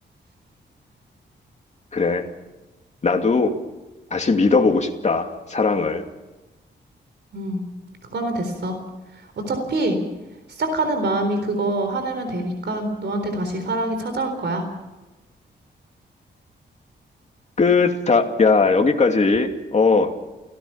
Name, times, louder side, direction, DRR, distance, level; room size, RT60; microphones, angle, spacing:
voice 1, 1.9-2.3 3.0-3.5 4.1-6.0 17.6-20.3, left 4 dB, 35° left, 4 dB, 2.6 m, -19 dB
voice 2, 8.0-8.8 9.5-10.0 10.5-14.6, right 2 dB, 65° right, 6 dB, 3.9 m, -25 dB
30.0 x 17.0 x 5.8 m, 1.1 s
wide cardioid pair, 110°, 19 cm